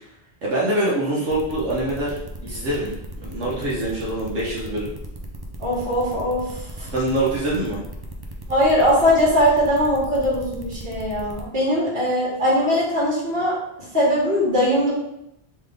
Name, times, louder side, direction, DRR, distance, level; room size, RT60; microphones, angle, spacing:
voice 1, 0.4-3.0 3.2-4.9 6.8-7.8, right 1 dB, 90° right, -6 dB, 1.3 m, -24 dB
sound 1, 1.3-11.4, right 2 dB, 40° right, 0.3 m, -38 dB
voice 2, 5.6-6.9 8.5-14.9, equal, 55° right, -7 dB, 1.8 m, -20 dB
3.8 x 3.1 x 3.4 m, 0.83 s
omnidirectional pair, 1.2 m